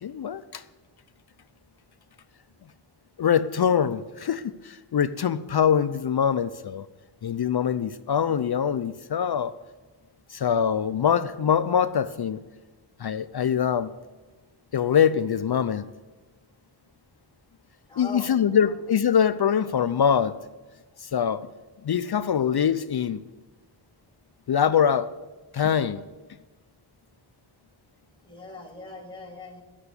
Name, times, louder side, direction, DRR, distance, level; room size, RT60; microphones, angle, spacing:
voice 1, 0.0-0.6 3.2-6.9 7.2-9.5 10.3-12.4 13.0-13.9 14.7-15.8 18.0-20.4 21.0-21.5 21.8-23.2 24.5-25.1 25.5-26.0, left 8 dB, 50° left, 0.5 m, -23 dB
voice 2, 17.9-18.7 28.2-29.6, left 3 dB, 10° left, 2.5 m, -41 dB
11.5 x 6.9 x 8.2 m
wide cardioid pair, 65°, 50 cm